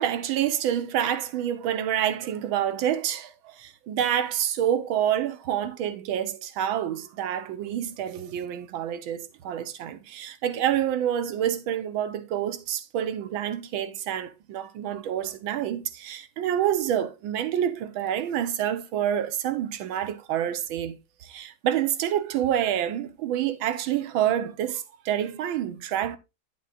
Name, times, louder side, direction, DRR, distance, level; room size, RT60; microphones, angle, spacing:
voice 1, 0.0-26.2, right 10 dB, 75° right, 1.6 m, -28 dB
10.5 x 7.9 x 2.4 m
omnidirectional pair, 2.2 m